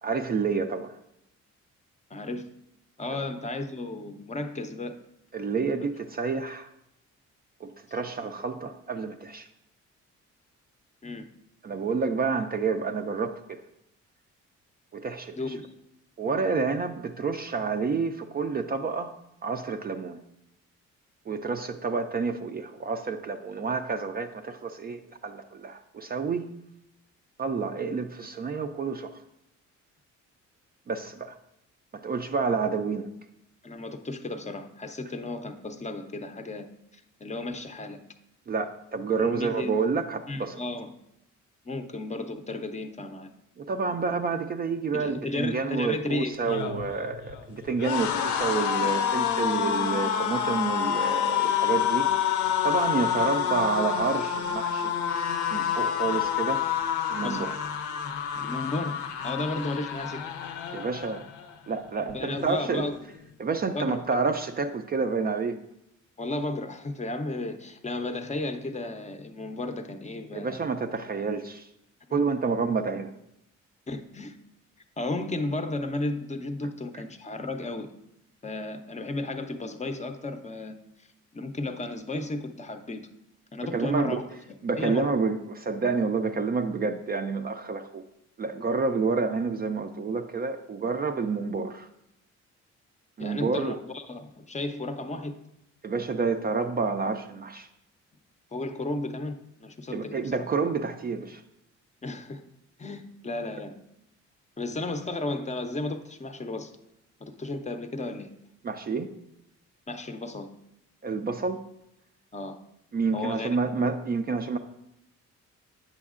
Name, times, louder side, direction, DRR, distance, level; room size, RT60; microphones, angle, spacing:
voice 1, 0.0-0.9 3.1-3.2 5.3-6.7 7.6-9.5 11.6-13.6 14.9-15.4 16.2-19.2 19.4-20.2 21.3-26.5 27.4-29.2 30.9-31.4 31.9-33.1 38.5-40.6 43.6-54.9 55.5-56.6 57.1-57.5 60.7-61.2 61.7-62.9 63.4-65.6 70.3-71.7 72.1-73.1 83.6-84.2 84.6-88.0 88.4-91.9 93.2-93.8 95.8-97.7 99.9-101.4 108.6-109.1 111.0-111.6 112.9-114.6, right 4 dB, 30° right, 7 dB, 0.4 m, -29 dB
voice 2, 2.1-2.5 3.0-4.9 11.0-11.3 15.3-15.7 16.3-16.4 33.6-36.7 37.2-38.0 39.2-39.7 40.3-40.9 41.6-43.3 44.9-46.8 57.2-57.4 58.3-60.2 62.1-63.0 63.7-64.0 66.2-70.6 72.1-72.2 73.9-74.4 75.0-77.9 78.4-80.7 81.3-83.0 83.5-84.2 84.8-85.1 93.2-95.3 98.5-100.5 102.0-102.4 102.8-103.7 104.6-106.7 107.2-108.3 109.9-110.5 112.3-112.6 113.1-113.5, left 2 dB, 25° left, 7 dB, 0.5 m, -34 dB
sound 1, 46.3-61.5 61.9-62.1 62.4-63.2, left 9 dB, 80° left, 0.6 m, -28 dB
8.5 x 6.2 x 2.4 m, 0.83 s
cardioid pair, 90°, 30 cm